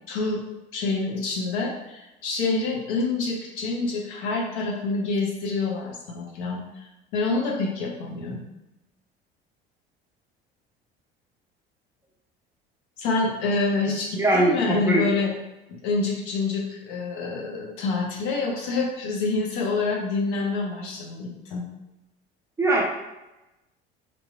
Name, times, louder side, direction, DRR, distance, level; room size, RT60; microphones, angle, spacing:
voice 1, 0.1-0.4 0.7-6.9 7.1-8.4 13.0-15.3 15.8-21.6, left 3 dB, 60° left, -1 dB, 0.7 m, -27 dB
voice 2, 14.2-15.0 22.6-22.8, right 1 dB, 10° right, -4 dB, 0.5 m, -21 dB
3.0 x 2.0 x 2.3 m, 0.97 s
figure-of-eight pair, 60°, 31 cm